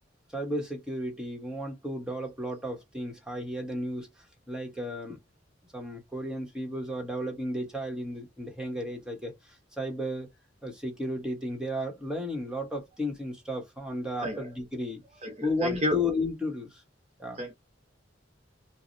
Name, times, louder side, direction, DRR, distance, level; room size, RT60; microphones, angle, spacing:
voice 1, 0.3-4.1 4.5-5.2 5.7-9.4 9.7-10.3 10.6-15.0 15.4-16.8 17.2-17.4, left 1 dB, 5° right, 1.2 m, -33 dB
voice 2, 14.2-14.5 15.2-16.1 17.4-17.5, left 1 dB, 35° right, 0.7 m, -31 dB
4.7 x 2.2 x 2.6 m
head